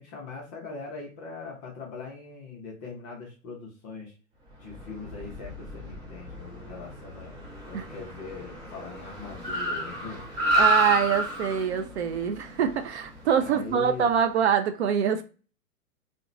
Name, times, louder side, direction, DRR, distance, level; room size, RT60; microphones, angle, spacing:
voice 1, 0.0-4.1 4.6-7.4 7.7-10.2 13.4-14.1, left 4 dB, 15° left, 0.4 m, -41 dB
Car, 4.6-14.1, right 1 dB, 25° right, 0.7 m, -31 dB
voice 2, 10.6-15.2, right 8 dB, 55° right, 0.4 m, -25 dB
2.8 x 2.1 x 2.4 m
hypercardioid pair, 120°, 42 cm